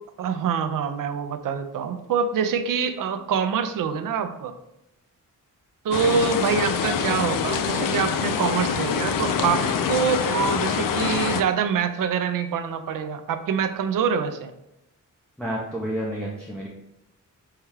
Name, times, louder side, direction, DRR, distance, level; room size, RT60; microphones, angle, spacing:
voice 1, 0.2-4.5 5.8-14.5, right 7 dB, 80° right, 8 dB, 0.5 m, -25 dB
sound 1, 5.9-11.4, left 7 dB, 80° left, 0.5 m, -25 dB
voice 2, 15.4-16.7, right 1 dB, 5° left, -5 dB, 0.5 m, -30 dB
5.5 x 2.3 x 3.2 m, 0.87 s
wide cardioid pair, 180°, 33 cm